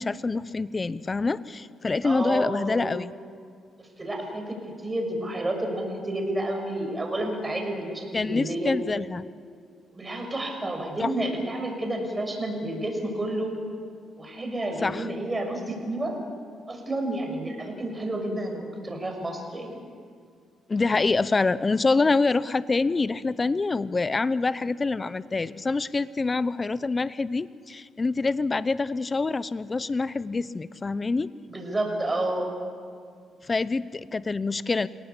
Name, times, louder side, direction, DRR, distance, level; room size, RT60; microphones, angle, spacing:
voice 1, 0.0-3.1 8.1-9.2 11.0-11.1 14.8-15.1 20.7-31.3 33.4-34.9, left 3 dB, 25° left, 16 dB, 0.7 m, -26 dB
voice 2, 2.0-2.9 3.8-4.6 4.8-8.8 9.9-13.5 14.2-16.2 16.7-19.8 31.5-32.6, right 1 dB, 20° right, 3 dB, 6.3 m, -30 dB
28.0 x 18.0 x 8.4 m, 2.1 s
cardioid pair, 90°, 0 cm